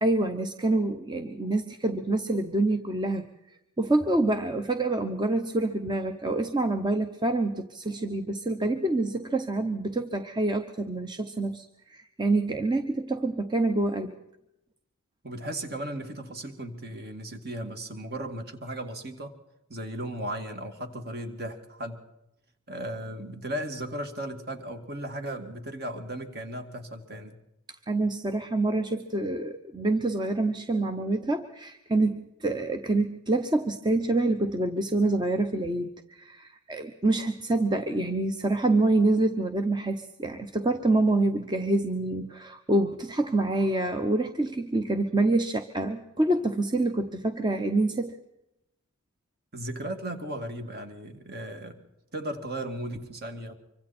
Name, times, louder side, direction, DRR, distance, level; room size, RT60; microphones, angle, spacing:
voice 1, 0.0-3.3 3.8-14.1 27.9-48.2, right 2 dB, 20° right, 7 dB, 0.9 m, -26 dB
voice 2, 15.2-19.4 19.7-22.0 22.7-27.4 49.5-51.8 52.1-53.5, right 1 dB, 45° right, 6 dB, 2.5 m, -36 dB
25.0 x 25.0 x 4.4 m, 0.85 s
head